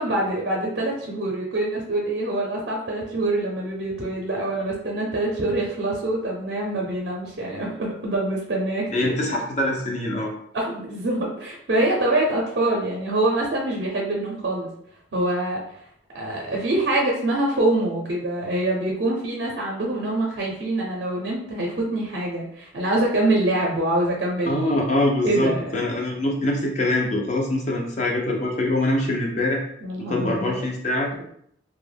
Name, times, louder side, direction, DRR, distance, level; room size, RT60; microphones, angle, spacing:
voice 1, 0.0-9.2 10.5-14.7 15.1-15.6 16.1-24.8 25.2-25.7 29.8-30.6, right 1 dB, 55° right, -1 dB, 0.5 m, -25 dB
voice 2, 8.9-10.3 24.5-29.6 30.1-31.1, left 1 dB, 35° left, 1 dB, 0.4 m, -24 dB
2.1 x 2.1 x 3.2 m, 0.69 s
head